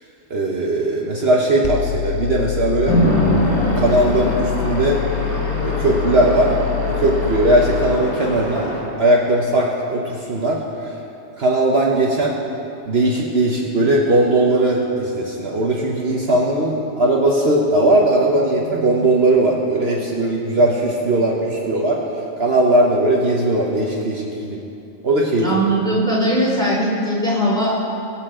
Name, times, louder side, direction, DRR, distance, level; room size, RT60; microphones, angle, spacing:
voice 1, 0.3-2.9 3.8-5.0 5.6-6.5 6.9-8.7 9.0-10.6 11.4-12.3 12.9-22.0 22.4-24.6 25.0-25.5, right 1 dB, 55° right, -2 dB, 1.3 m, -18 dB
sound 1, 1.6-8.0, left 19 dB, 70° left, 0.9 m, -26 dB
Chatter / Traffic noise roadway noise / Train, 2.8-8.8, equal, 25° left, 2.5 m, -23 dB
voice 2, 25.4-27.8, right 1 dB, 5° left, -7 dB, 3.2 m, -19 dB
22.0 x 7.4 x 3.7 m, 2.9 s
omnidirectional pair, 1.3 m